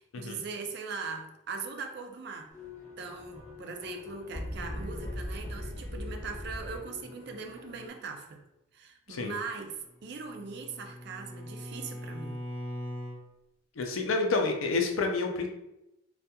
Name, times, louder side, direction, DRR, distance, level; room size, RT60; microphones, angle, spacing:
voice 1, 0.0-2.5 3.0-8.4 8.7-12.4, right 4 dB, 50° right, 5 dB, 0.3 m, -40 dB
sound 1, 2.5-7.9, left 1 dB, 15° left, 0.7 m, -40 dB
Bowed string instrument, 9.8-13.2, equal, 70° right, 0.7 m, -41 dB
voice 2, 13.8-15.5, left 3 dB, 80° left, 3 dB, 0.4 m, -29 dB
2.8 x 2.3 x 2.2 m, 0.89 s
head